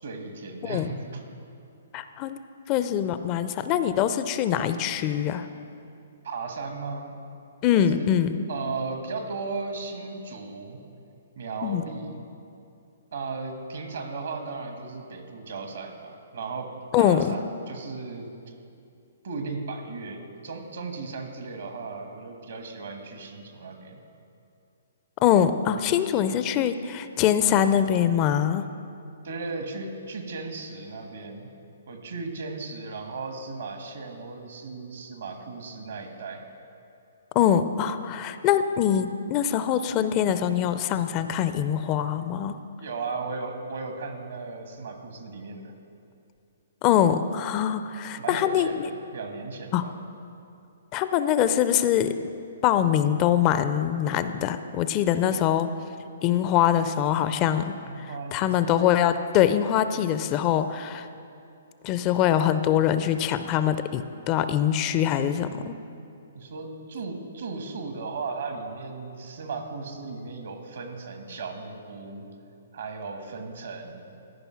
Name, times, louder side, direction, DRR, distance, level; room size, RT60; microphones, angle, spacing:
voice 1, 0.0-1.2 6.2-7.2 7.7-8.1 8.5-10.8 11.4-12.1 13.1-18.3 19.2-24.0 29.2-31.5 31.9-36.4 42.8-45.7 48.2-49.9 57.8-58.4 66.3-72.3 72.7-74.2, right 4 dB, 70° right, 5 dB, 1.4 m, -36 dB
voice 2, 1.9-2.4 2.7-5.5 7.6-8.4 11.6-11.8 16.9-17.3 25.2-28.7 37.4-42.5 46.8-48.9 49.7-49.8 50.9-52.1 52.6-55.7 56.2-57.7 58.0-61.1 61.8-65.7, left 10 dB, 30° left, 11 dB, 0.4 m, -23 dB
13.5 x 5.4 x 5.7 m, 2.6 s
hypercardioid pair, 130°, 0 cm